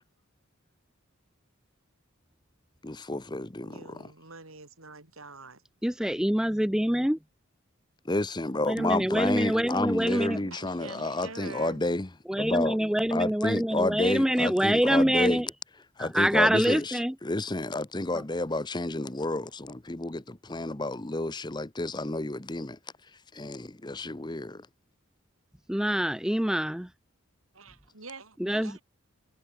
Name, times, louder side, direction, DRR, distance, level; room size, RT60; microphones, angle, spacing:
voice 1, 2.8-4.1 8.0-12.1 12.4-12.8 13.1-15.4 16.0-22.8 23.3-24.7, left 2 dB, 20° left, 1.0 m, -30 dB
voice 2, 3.6-5.6 10.0-11.8 27.5-28.8, right 3 dB, 75° right, 6.9 m, -45 dB
voice 3, 5.8-7.2 8.6-10.4 12.3-15.5 16.0-17.1 18.1-18.2 25.7-26.9 28.4-28.8, equal, 5° right, 0.4 m, -25 dB
head